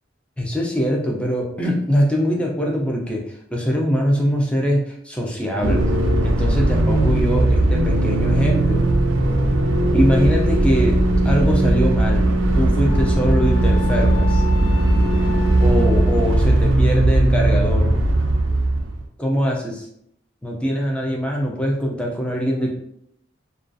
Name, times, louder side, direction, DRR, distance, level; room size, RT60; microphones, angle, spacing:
voice 1, 0.4-5.8 6.2-8.9 9.9-11.0 11.2-12.2 12.5-14.4 15.6-17.9 19.2-19.9 20.4-22.7, equal, 5° left, -1 dB, 0.4 m, -22 dB
sound 1, 5.6-19.0, right 1 dB, 85° right, 0.4 m, -18 dB
Wind instrument woodwind instrument, 12.9-17.2, left 9 dB, 80° left, 0.3 m, -37 dB
2.3 x 2.3 x 2.5 m, 0.72 s
head